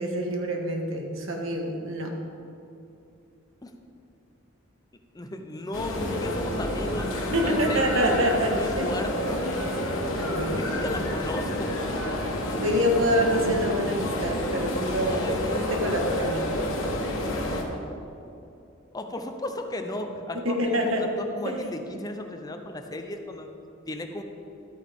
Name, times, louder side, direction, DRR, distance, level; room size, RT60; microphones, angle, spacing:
voice 1, 0.0-2.1 7.3-8.9 10.2-10.9 12.6-16.4 20.4-21.1 21.4-21.5, equal, 75° right, 1 dB, 1.5 m, -26 dB
voice 2, 5.1-7.1 7.4-9.4 10.6-11.7 15.0-15.6 18.9-23.5 23.9-24.2, left 1 dB, 20° left, 5 dB, 0.6 m, -35 dB
sound 1, 5.7-17.6, left 1 dB, 70° left, 1.4 m, -29 dB
12.5 x 8.8 x 3.6 m, 2.7 s
head